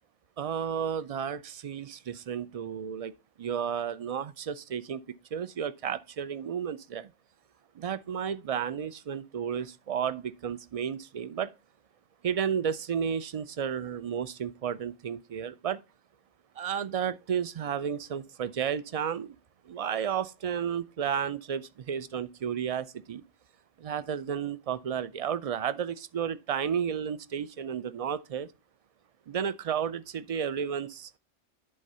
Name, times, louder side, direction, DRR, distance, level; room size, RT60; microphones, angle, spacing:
voice 1, 0.4-3.1 3.4-5.0 5.3-7.1 7.8-11.5 12.2-15.8 16.6-19.4 19.7-23.2 23.8-28.5 29.3-31.1, right 8 dB, 65° right, 0.3 m, -32 dB
11.0 x 3.8 x 5.4 m
omnidirectional pair, 1.2 m